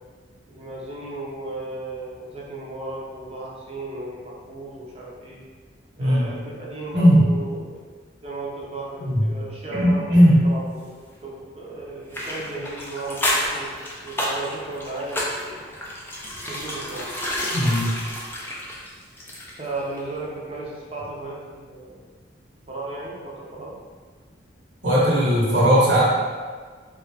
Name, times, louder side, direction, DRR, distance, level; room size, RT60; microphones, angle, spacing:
voice 1, 0.5-5.4 6.0-7.8 8.2-10.9 11.2-15.6 16.5-17.1 19.6-22.0 22.7-23.8, right 2 dB, 30° right, -4 dB, 0.6 m, -35 dB
voice 2, 9.7-10.4 17.5-17.9 24.8-26.0, equal, 65° right, -7 dB, 1.0 m, -17 dB
sound 1, 12.1-19.7 20.0-20.1, left 1 dB, 10° left, 0.4 m, -30 dB
3.5 x 2.4 x 3.2 m, 1.5 s
head